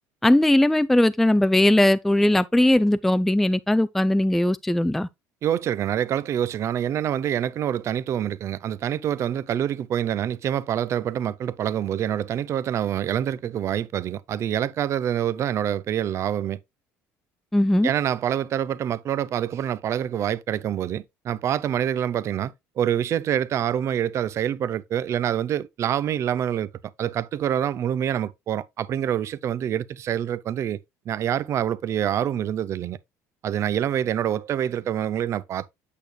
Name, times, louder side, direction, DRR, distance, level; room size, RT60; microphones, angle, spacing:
voice 1, 0.2-5.1 17.5-17.9, left 1 dB, 5° left, 0.3 m, -19 dB
voice 2, 5.4-16.6 17.8-26.7 27.0-30.8 31.1-33.0 33.4-35.7, right 10 dB, 45° right, 0.5 m, -26 dB
8.5 x 6.7 x 2.3 m
cardioid pair, 110°, 7 cm